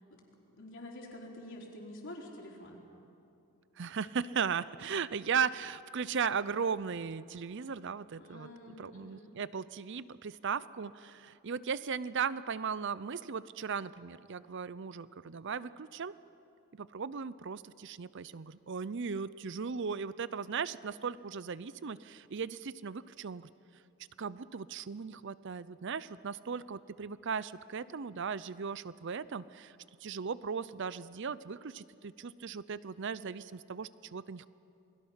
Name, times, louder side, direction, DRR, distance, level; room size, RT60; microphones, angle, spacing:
voice 1, 0.5-2.8 8.2-9.3, left 1 dB, 55° left, -1 dB, 3.9 m, -48 dB
voice 2, 3.8-8.5 8.8-16.1 16.7-23.5 24.2-34.5, right 6 dB, 55° right, 17 dB, 0.6 m, -37 dB
28.5 x 21.5 x 5.7 m, 2.7 s
head